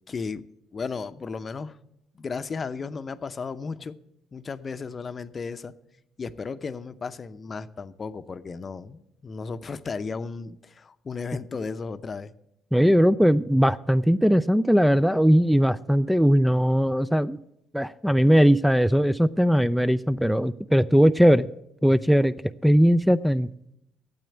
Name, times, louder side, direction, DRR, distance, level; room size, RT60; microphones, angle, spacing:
voice 1, 0.1-0.4 0.7-1.8 2.1-4.0 4.3-5.8 6.2-12.3, left 4 dB, 40° left, 12 dB, 0.7 m, -34 dB
voice 2, 12.7-17.4 17.7-21.5 21.8-22.4 22.6-23.5, equal, ahead, 14 dB, 0.4 m, -19 dB
9.1 x 8.0 x 9.1 m, 0.80 s
hypercardioid pair, 60°, 0 cm